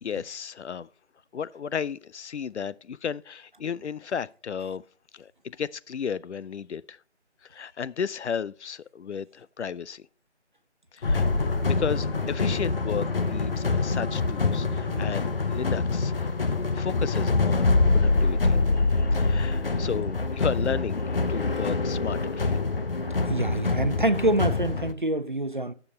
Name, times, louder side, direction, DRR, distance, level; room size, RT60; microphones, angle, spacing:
voice 1, 0.0-0.9 1.3-4.8 5.1-7.0 7.5-10.1 10.9-11.2 11.6-16.3 16.7-22.6, left 7 dB, 70° left, 0.5 m, -34 dB
sound 1, 11.0-24.9, left 3 dB, 50° left, 0.8 m, -25 dB
Bowed string instrument, 11.0-15.4, equal, 15° left, 3.6 m, -41 dB
voice 2, 23.3-25.7, right 1 dB, 45° right, 0.4 m, -26 dB
12.5 x 6.9 x 3.1 m
figure-of-eight pair, 175°, 36 cm